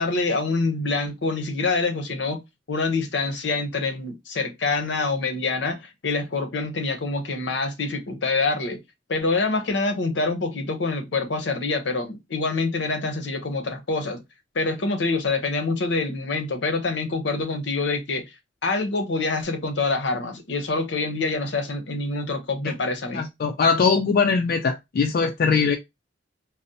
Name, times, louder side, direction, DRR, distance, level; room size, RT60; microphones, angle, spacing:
voice 1, 0.0-2.4 2.7-8.8 9.1-14.2 14.5-18.2 18.6-23.3, left 3 dB, 75° left, 0.7 m, -26 dB
voice 2, 23.1-25.8, left 5 dB, 55° left, 0.3 m, -21 dB
4.1 x 2.0 x 2.7 m
head